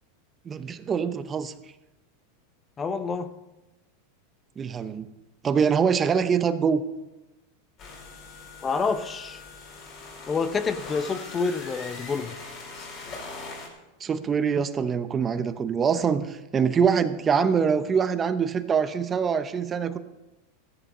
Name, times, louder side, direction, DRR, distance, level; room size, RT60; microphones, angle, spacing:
voice 1, 0.5-1.5 4.6-5.1 5.4-6.8 14.0-20.0, right 6 dB, 25° right, 11 dB, 0.8 m, -24 dB
voice 2, 2.8-3.3 8.6-9.4 10.3-12.4, left 5 dB, 20° left, 11 dB, 0.8 m, -28 dB
sound 1, 7.8-13.7, left 3 dB, 40° left, 4.7 m, -41 dB
14.0 x 11.0 x 5.5 m, 1.0 s
hypercardioid pair, 120°, 0 cm